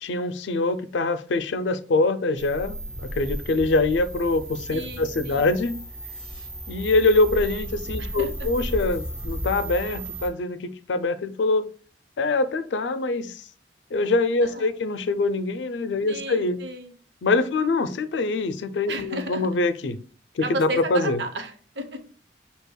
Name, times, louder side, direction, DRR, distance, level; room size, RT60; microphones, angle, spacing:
voice 1, 0.0-5.7 6.7-11.7 12.2-13.5 13.9-16.6 17.2-20.0 20.4-21.2, left 3 dB, 85° left, 0.4 m, -24 dB
sound 1, 2.4-10.3, right 1 dB, 30° right, 1.8 m, -34 dB
voice 2, 4.7-5.5 8.0-8.5 14.4-14.8 16.1-16.9 18.9-19.5 20.4-22.0, right 1 dB, 75° right, 0.8 m, -33 dB
6.2 x 2.8 x 2.2 m
head